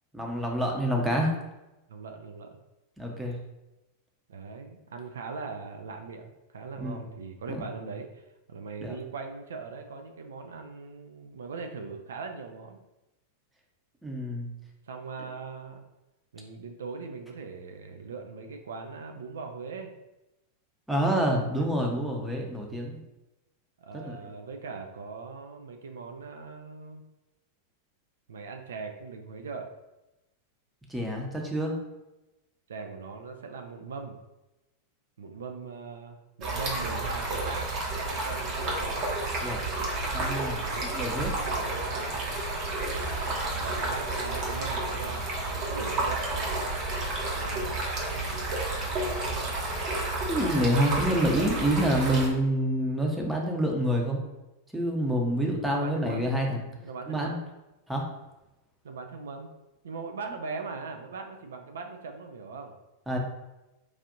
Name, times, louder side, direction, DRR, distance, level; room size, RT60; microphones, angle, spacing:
voice 1, 0.1-1.3 3.0-3.4 6.8-7.0 7.5-7.6 8.8-8.9 14.0-14.5 20.9-23.0 23.9-24.2 30.9-31.8 39.4-39.6 40.1-40.6 40.9-41.3 50.3-54.2 54.7-56.6 57.1-57.4 57.9-58.0 63.1-63.2, equal, 5° right, 0 dB, 0.7 m, -27 dB
voice 2, 1.9-2.5 4.3-12.8 14.9-15.9 16.3-19.9 21.6-21.7 23.8-27.0 28.3-29.7 32.7-34.2 35.2-39.0 40.5-42.4 43.2-46.7 47.3-49.6 55.7-56.3 56.8-57.4 58.8-59.5 59.8-62.7, right 4 dB, 65° right, 5 dB, 0.3 m, -40 dB
Stream, 36.4-52.3, right 2 dB, 35° right, 0.8 m, -31 dB
4.7 x 2.5 x 2.6 m, 0.98 s
figure-of-eight pair, 90°, 0 cm